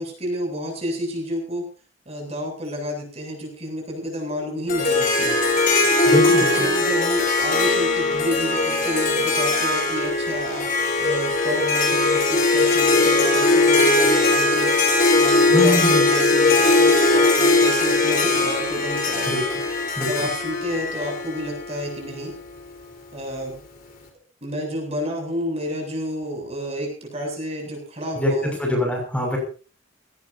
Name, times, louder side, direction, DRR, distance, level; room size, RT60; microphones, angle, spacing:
voice 1, 0.0-1.6 2.1-5.4 6.3-10.7 11.0-14.8 15.2-19.3 20.1-22.3 23.1-23.6 24.4-28.6, equal, 30° right, 1 dB, 7.8 m, -30 dB
Harp, 4.7-22.0, left 3 dB, 45° left, 4.4 m, -19 dB
voice 2, 6.1-6.5 15.5-16.0 19.3-19.4 20.0-20.1 28.2-28.3 28.6-29.4, equal, 5° left, 0 dB, 6.4 m, -22 dB
20.0 x 19.0 x 2.8 m, 0.36 s
head